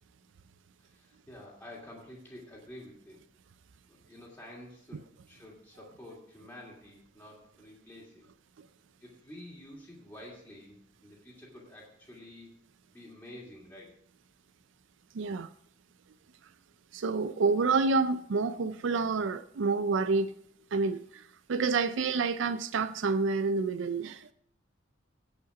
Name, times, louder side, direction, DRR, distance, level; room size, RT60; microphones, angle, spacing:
voice 1, 0.8-3.2 3.9-8.3 9.0-12.5 12.9-13.9, left 1 dB, 10° left, 2.6 m, -49 dB
voice 2, 15.1-15.5 16.9-20.3 20.7-21.2 21.5-24.3, right 4 dB, 65° right, 0.4 m, -28 dB
17.0 x 5.7 x 4.9 m
head